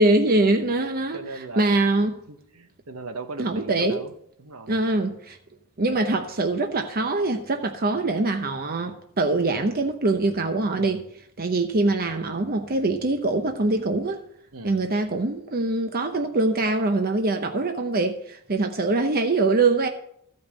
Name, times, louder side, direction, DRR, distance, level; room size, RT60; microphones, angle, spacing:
voice 1, 0.0-1.2 1.6-2.2 3.4-4.0 4.7-5.4 5.8-11.0 11.4-14.2 14.6-19.9, right 2 dB, 45° right, 0.8 m, -23 dB
voice 2, 0.8-1.7 2.3-4.1 4.4-4.8 10.7-11.1 14.5-14.8, right 3 dB, 70° right, 1.1 m, -39 dB
14.5 x 5.4 x 7.1 m
head